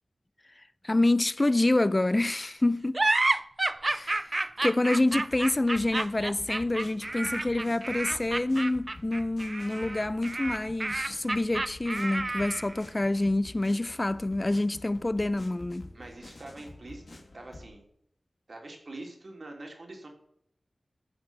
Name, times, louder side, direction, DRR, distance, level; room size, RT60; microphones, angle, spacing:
voice 1, 0.8-3.0 3.9-15.9, left 2 dB, 30° left, 0.4 m, -27 dB
sound 1, 2.9-12.8, right 2 dB, 35° right, 0.4 m, -30 dB
sound 2, 5.1-17.7, left 2 dB, 65° left, 1.9 m, -49 dB
voice 2, 15.9-17.8 18.5-20.1, right 2 dB, 60° right, 3.1 m, -44 dB
14.5 x 7.1 x 6.0 m
wide cardioid pair, 65°, 0 cm